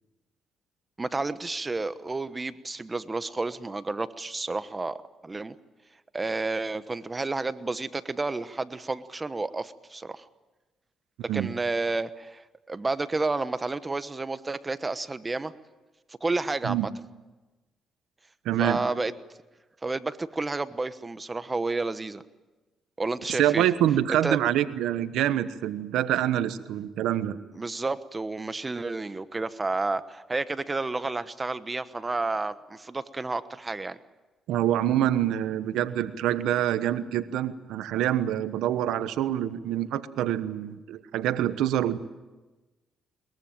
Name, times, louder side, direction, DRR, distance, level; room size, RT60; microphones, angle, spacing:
voice 1, 1.0-5.0 5.2-5.5 6.1-10.3 11.2-15.5 16.2-16.8 18.6-19.1 19.8-22.2 23.0-23.6 24.2-24.4 27.5-34.0, right 3 dB, 20° right, 13 dB, 1.1 m, -30 dB
voice 2, 18.4-18.8 23.3-27.4 34.5-42.0, right 11 dB, 85° right, 12 dB, 1.1 m, -26 dB
22.0 x 21.5 x 8.9 m, 1.2 s
cardioid pair, 90°, 0 cm